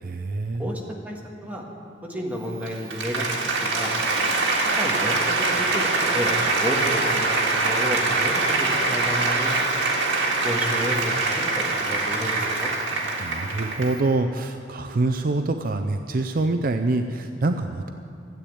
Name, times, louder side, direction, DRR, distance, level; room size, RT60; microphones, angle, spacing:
voice 1, 0.0-0.7 13.2-17.9, right 2 dB, 50° right, 7 dB, 0.5 m, -25 dB
voice 2, 0.6-1.6 2.0-3.9 4.6-6.3 6.6-9.5 10.4-12.7, equal, 10° right, -1 dB, 1.6 m, -31 dB
Applause, 2.5-14.1, right 3 dB, 85° right, 1.9 m, -24 dB
13.0 x 8.5 x 8.6 m, 2.6 s
head